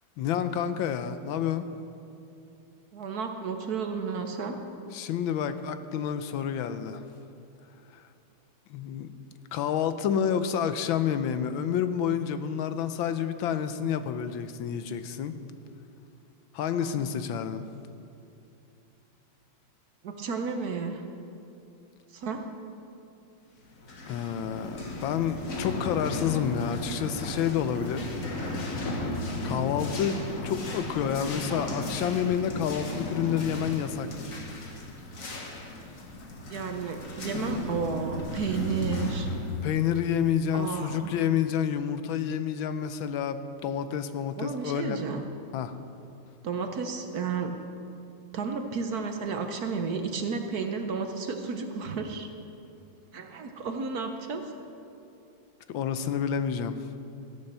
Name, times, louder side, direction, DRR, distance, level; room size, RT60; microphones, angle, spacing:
voice 1, 0.2-1.7 4.9-7.0 8.7-9.1 9.5-15.3 16.5-17.6 24.1-28.1 29.4-34.1 39.5-45.0 45.5-45.7 55.7-56.8, left 8 dB, 85° left, 10 dB, 1.5 m, -29 dB
voice 2, 2.9-4.6 16.8-17.0 20.0-21.0 22.1-22.4 36.5-39.3 40.5-41.2 44.4-45.2 46.4-47.5 48.3-52.3 53.1-54.4, right 5 dB, 60° right, 5 dB, 1.2 m, -32 dB
sound 1, 23.7-41.1, left 2 dB, 45° left, 1.6 m, -35 dB
15.0 x 8.7 x 6.7 m, 2.7 s
omnidirectional pair, 2.1 m